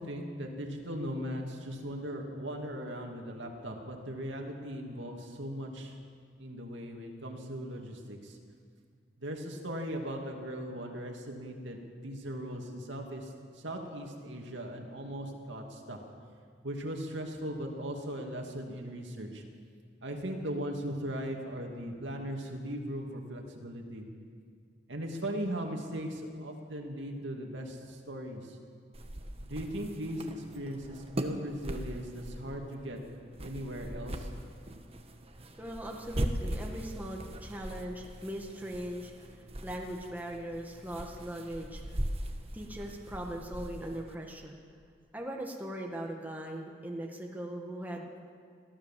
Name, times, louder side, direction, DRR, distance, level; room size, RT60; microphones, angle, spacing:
voice 1, 0.0-6.0 6.4-8.4 9.2-16.0 16.6-19.4 20.0-24.1 24.9-28.6 29.4-33.0 33.4-34.3, equal, 65° right, 2 dB, 2.6 m, -38 dB
sound 1, 28.9-44.1, equal, 30° right, 1.4 m, -40 dB
voice 2, 35.6-42.0 42.5-44.6 45.1-48.1, right 1 dB, 10° right, 0 dB, 1.6 m, -40 dB
23.0 x 15.0 x 7.5 m, 2.2 s
head